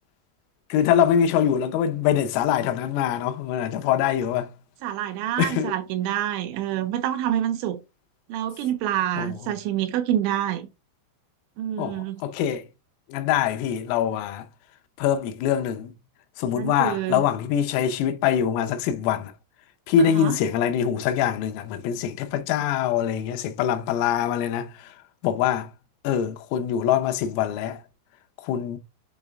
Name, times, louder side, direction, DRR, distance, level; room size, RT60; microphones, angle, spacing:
voice 1, 0.7-4.5 5.4-5.8 9.2-9.3 11.8-12.6 13.1-14.5 15.0-15.9 16.4-19.3 19.9-24.7 25.2-25.7 26.1-27.8 28.4-28.8, left 9 dB, 90° left, 3.5 m, -24 dB
voice 2, 4.8-7.8 8.3-10.7 11.6-12.2 16.6-17.2 20.0-20.4, right 11 dB, 80° right, 2.9 m, -27 dB
7.8 x 4.0 x 3.4 m
omnidirectional pair, 5.8 m